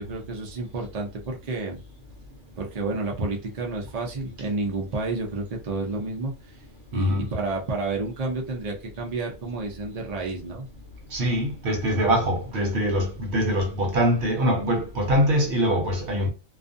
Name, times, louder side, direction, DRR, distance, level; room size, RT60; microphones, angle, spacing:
voice 1, 0.0-1.8 2.6-6.6 6.9-10.7, right 3 dB, 45° right, 0.5 m, -30 dB
voice 2, 6.9-7.3 11.1-16.3, equal, 60° right, 0.9 m, -23 dB
2.4 x 2.3 x 2.5 m
omnidirectional pair, 1.3 m